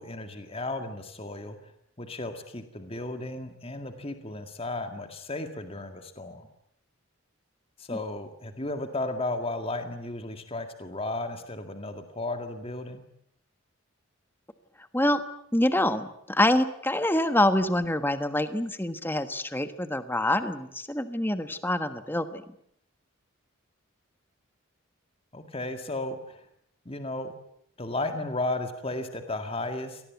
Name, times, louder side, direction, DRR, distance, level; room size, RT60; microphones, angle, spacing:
voice 1, 0.0-1.6 2.0-6.5 7.8-13.0 25.3-26.4 26.9-27.3 27.8-30.0, left 2 dB, 30° left, 7 dB, 2.0 m, -34 dB
voice 2, 15.5-22.4, left 1 dB, 10° left, 10 dB, 1.3 m, -26 dB
26.0 x 19.0 x 9.4 m, 0.73 s
head